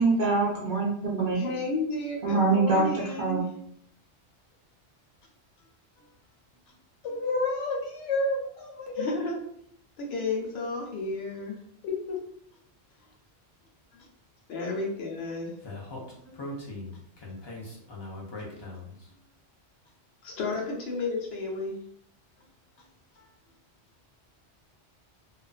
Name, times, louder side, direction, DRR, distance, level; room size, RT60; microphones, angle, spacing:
voice 1, 0.0-1.4 2.2-2.9 3.2-3.4, right 3 dB, 60° right, -4 dB, 0.5 m, -24 dB
voice 2, 1.3-3.4 9.0-9.4 10.0-11.5 14.5-15.5 20.2-21.8, left 3 dB, 65° left, -1 dB, 0.8 m, -32 dB
voice 3, 7.0-9.3 11.8-12.2 16.0-16.5 23.2-23.3, left 2 dB, 90° left, -1 dB, 1.0 m, -31 dB
Speech, 15.6-19.0, left 2 dB, 40° left, 0.3 m, -40 dB
2.4 x 2.3 x 2.3 m, 0.68 s
omnidirectional pair, 1.2 m